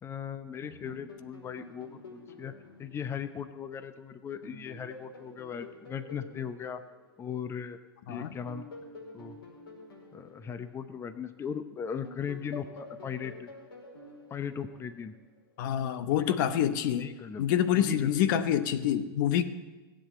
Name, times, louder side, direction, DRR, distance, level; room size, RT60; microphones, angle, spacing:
voice 1, 0.0-2.5 2.8-6.8 7.2-7.8 8.1-8.7 9.1-9.4 10.1-13.5 14.3-15.1 16.1-16.4 16.8-17.5 17.7-18.1, left 7 dB, 20° left, 11 dB, 0.8 m, -38 dB
sound 1, 0.6-4.0 4.4-7.7 8.2-11.6 12.0-15.3, left 2 dB, 75° left, 5.0 m, -49 dB
voice 2, 15.6-17.1 17.4-19.4, left 10 dB, 55° left, 12 dB, 0.9 m, -27 dB
16.5 x 7.7 x 8.6 m, 1.2 s
figure-of-eight pair, 95°, 13 cm